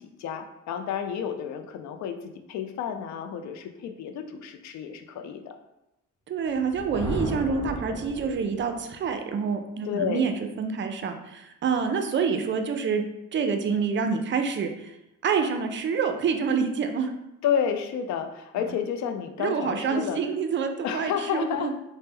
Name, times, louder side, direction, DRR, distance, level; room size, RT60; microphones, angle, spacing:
voice 1, 0.2-5.6 9.9-10.2 17.4-20.2 20.8-21.7, left 8 dB, 65° left, 7 dB, 0.4 m, -30 dB
voice 2, 6.3-13.0 13.3-14.9 15.2-17.1 19.4-21.7, right 5 dB, 40° right, 6 dB, 0.4 m, -27 dB
Thunder, 6.5-8.8, equal, 15° left, 0.9 m, -34 dB
3.1 x 2.1 x 3.4 m, 0.90 s
cardioid pair, 90°, 30 cm